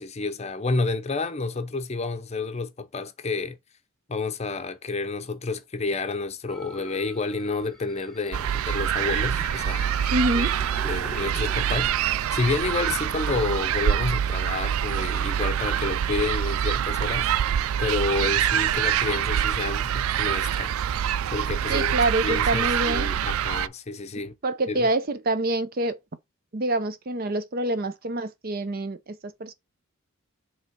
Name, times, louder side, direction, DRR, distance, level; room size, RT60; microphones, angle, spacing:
voice 1, 0.0-3.6 4.1-9.9 10.3-10.5 10.8-20.7 21.3-21.9 22.2-24.3 24.7-24.9, left 3 dB, 30° left, 0.6 m, -30 dB
sound 1, 6.5-13.5, left 1 dB, ahead, 0.9 m, -44 dB
sound 2, 8.3-23.7, right 9 dB, 85° right, 0.3 m, -25 dB
voice 2, 10.1-10.5 21.7-23.1 24.4-26.0 26.5-29.5, right 2 dB, 45° right, 0.6 m, -26 dB
5.5 x 3.4 x 5.3 m
head